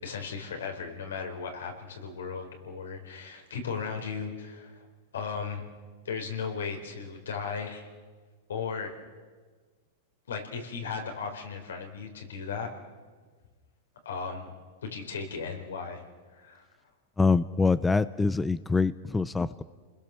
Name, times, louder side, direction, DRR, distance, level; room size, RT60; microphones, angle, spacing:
voice 1, 0.0-4.9 5.1-5.6 6.0-7.9 8.5-8.9 10.3-12.7 14.0-14.5 14.8-16.0 16.3-16.6, left 5 dB, 90° left, 3 dB, 4.6 m, -36 dB
voice 2, 17.2-19.6, left 4 dB, 10° left, 15 dB, 0.6 m, -25 dB
29.5 x 21.0 x 7.0 m, 1.5 s
hypercardioid pair, 125°, 0 cm